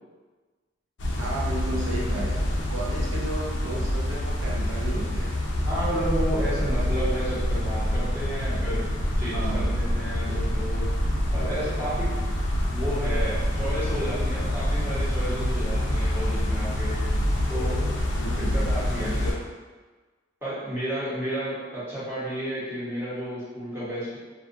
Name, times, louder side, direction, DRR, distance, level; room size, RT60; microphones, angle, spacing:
sound 1, 1.0-19.3, left 1 dB, 65° left, 0.4 m, -26 dB
voice 1, 1.2-5.4 9.3-9.7 18.2-19.4, right 2 dB, 80° right, -4 dB, 0.6 m, -34 dB
voice 2, 5.7-8.9 9.2-10.9 11.3-12.1 12.7-17.0 17.5-17.9 18.4-19.4 20.4-24.2, equal, 10° right, -11 dB, 1.0 m, -32 dB
2.6 x 2.4 x 2.5 m, 1.3 s
head